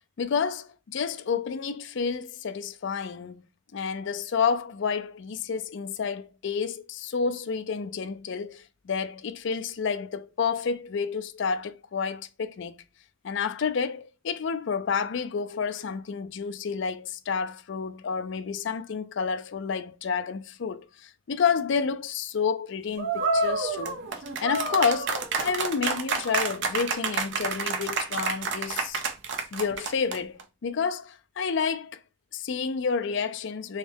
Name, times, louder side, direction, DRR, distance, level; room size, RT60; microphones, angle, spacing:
voice 1, 0.2-3.4 3.7-12.8 13.2-24.0 24.4-29.0 29.5-32.0 32.3-33.8, left 6 dB, 65° left, 0.4 m, -30 dB
sound 1, 23.0-30.4, right 4 dB, 65° right, 0.6 m, -29 dB
3.5 x 3.2 x 3.4 m
head